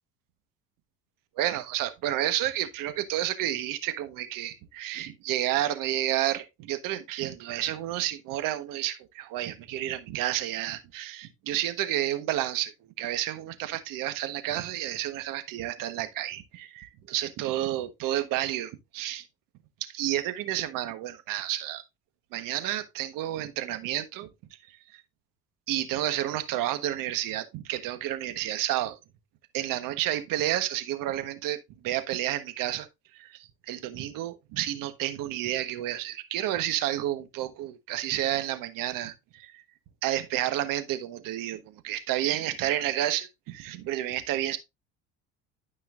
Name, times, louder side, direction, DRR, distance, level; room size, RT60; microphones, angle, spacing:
voice 1, 1.4-19.3 19.8-21.8 22.3-24.3 24.7-25.0 25.7-29.0 29.5-31.6 31.8-32.9 33.1-39.6 40.0-44.6, right 13 dB, 65° right, 1.3 m, -30 dB
12.0 x 5.6 x 2.5 m
hypercardioid pair, 75°, 35 cm